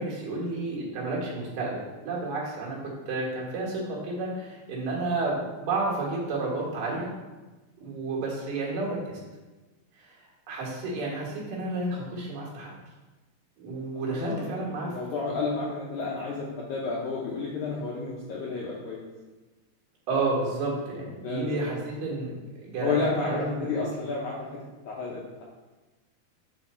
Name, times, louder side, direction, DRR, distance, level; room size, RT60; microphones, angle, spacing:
voice 1, 0.0-7.1 7.8-9.2 10.0-10.2 10.5-12.7 13.6-14.9 20.1-22.3 22.6-23.9, right 2 dB, 65° right, -4 dB, 2.9 m, -31 dB
voice 2, 13.9-19.0 21.2-21.7 22.8-25.4, left 4 dB, 80° left, -4 dB, 1.7 m, -31 dB
6.5 x 4.7 x 4.3 m, 1.2 s
omnidirectional pair, 4.5 m